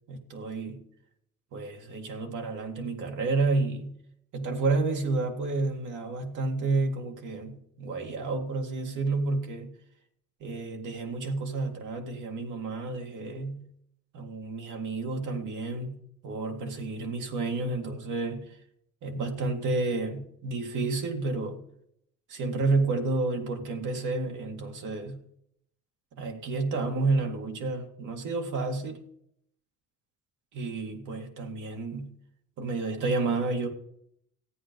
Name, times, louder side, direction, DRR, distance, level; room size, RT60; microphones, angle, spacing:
voice 1, 0.1-0.8 1.5-4.0 4.3-9.8 10.4-13.7 14.1-18.6 19.0-21.6 22.3-25.2 26.1-29.1 30.5-32.2 32.6-33.7, right 3 dB, 80° right, 2.1 m, -30 dB
14.0 x 9.2 x 5.3 m
cardioid pair, 90°, 30 cm